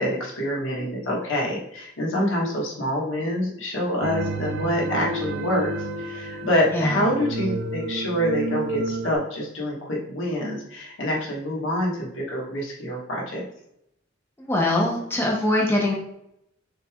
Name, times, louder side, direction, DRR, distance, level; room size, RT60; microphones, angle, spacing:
voice 1, 0.0-13.5, equal, 80° left, -3 dB, 1.4 m, -26 dB
sound 1, 4.0-9.1, right 2 dB, 60° right, 0.4 m, -30 dB
voice 2, 6.7-7.0 14.4-15.9, left 1 dB, 10° left, -2 dB, 0.8 m, -22 dB
6.3 x 3.3 x 2.4 m, 0.76 s
head